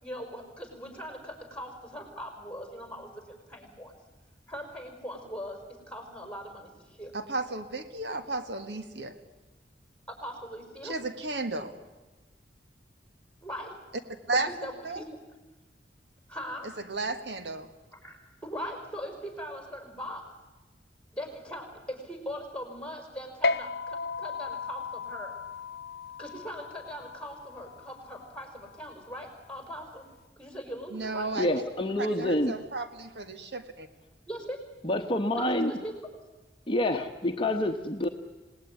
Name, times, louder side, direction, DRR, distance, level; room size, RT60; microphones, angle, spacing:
voice 1, 0.0-3.9 4.5-7.2 10.1-10.9 13.4-13.8 14.3-15.1 16.3-16.7 17.9-20.3 21.1-25.4 26.2-30.1 30.4-31.3 34.3-34.6 35.3-36.3, equal, 5° left, 5 dB, 5.2 m, -40 dB
voice 2, 7.1-9.1 10.8-11.7 14.3-14.5 14.8-15.0 16.9-17.7 30.9-31.5 32.0-33.9, right 3 dB, 70° right, 9 dB, 1.7 m, -33 dB
sound 1, 23.4-30.2, left 4 dB, 65° left, 0.8 m, -36 dB
voice 3, 31.4-32.5 34.8-35.7 36.7-38.1, left 1 dB, 30° left, 5 dB, 1.1 m, -27 dB
27.0 x 19.0 x 9.7 m, 1.2 s
head